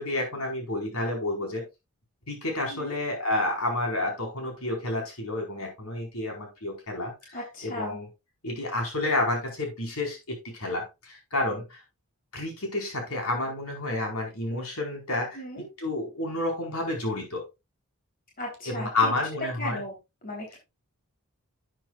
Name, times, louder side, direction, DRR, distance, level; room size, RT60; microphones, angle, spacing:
voice 1, 0.0-1.7 2.3-8.1 8.4-11.8 12.3-15.4 15.8-17.4 18.6-19.8, left 2 dB, 75° left, 1 dB, 4.6 m, -30 dB
voice 2, 7.3-8.0 15.3-15.7 18.4-19.3 19.6-20.0 20.2-20.6, left 1 dB, 40° left, -1 dB, 3.6 m, -37 dB
11.5 x 8.8 x 2.4 m, 0.24 s
head